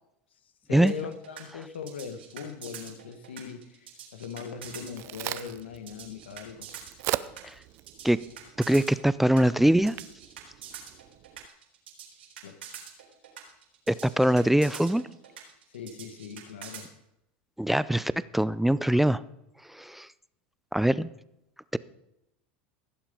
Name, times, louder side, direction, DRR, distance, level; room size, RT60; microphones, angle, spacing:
voice 1, 0.7-6.7 12.4-12.6 15.7-16.9, left 6 dB, 90° left, 10 dB, 1.4 m, -40 dB
sound 1, 0.9-16.9, right 9 dB, 90° right, 3.7 m, -45 dB
Crack, 4.5-11.5, right 16 dB, 55° right, 0.6 m, -40 dB
voice 2, 8.7-10.0 13.9-15.0 17.6-19.2 19.7-20.1 20.7-21.1, right 1 dB, 5° right, 17 dB, 0.4 m, -23 dB
16.5 x 7.3 x 5.3 m, 0.85 s
hypercardioid pair, 95°, 6 cm